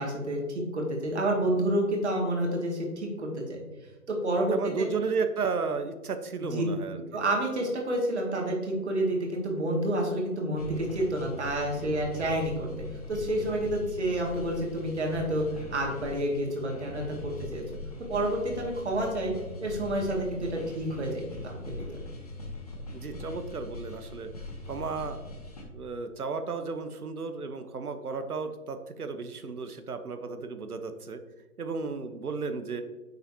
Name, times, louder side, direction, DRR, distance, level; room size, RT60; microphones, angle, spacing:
voice 1, 0.0-3.6 4.1-4.9 6.4-6.6 7.1-12.7 13.1-17.6 18.1-19.3 19.6-21.7, right 1 dB, 45° right, 0 dB, 2.3 m, -29 dB
voice 2, 4.5-7.0 22.9-24.3 24.7-25.2 25.7-31.2 31.6-32.8, right 4 dB, 70° right, 8 dB, 1.1 m, -33 dB
sound 1, 10.6-25.6, left 2 dB, 25° left, 1.1 m, -41 dB
9.6 x 6.7 x 2.8 m, 1.2 s
hypercardioid pair, 170°, 46 cm